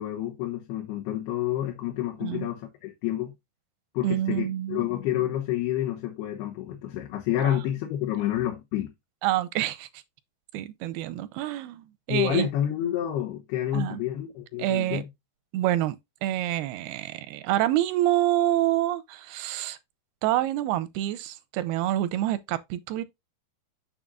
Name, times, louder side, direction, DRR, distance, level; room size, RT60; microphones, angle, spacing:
voice 1, 0.0-3.3 3.9-8.9 12.1-15.1, left 12 dB, 90° left, 3.2 m, -29 dB
voice 2, 4.0-4.8 7.4-7.6 9.2-9.9 10.5-12.5 13.7-14.0 14.6-15.0 15.5-19.8 20.2-23.0, right 13 dB, 90° right, 2.6 m, -27 dB
7.4 x 7.3 x 2.5 m
omnidirectional pair, 4.5 m